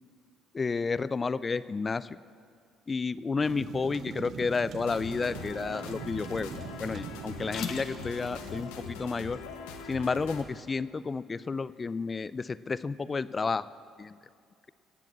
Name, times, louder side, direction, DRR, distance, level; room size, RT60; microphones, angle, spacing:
voice 1, 0.5-2.2 2.9-6.5 6.8-9.4 9.9-13.7 14.0-14.2, left 4 dB, 35° left, 17 dB, 0.4 m, -31 dB
sound 1, 3.4-8.6, right 9 dB, 60° right, 0.5 m, -43 dB
sound 2, 4.3-9.9, left 7 dB, 65° left, 1.0 m, -46 dB
sound 3, 4.8-10.4, left 5 dB, 85° left, 1.0 m, -42 dB
16.5 x 7.6 x 7.4 m, 2.3 s
hypercardioid pair, 55°, 0 cm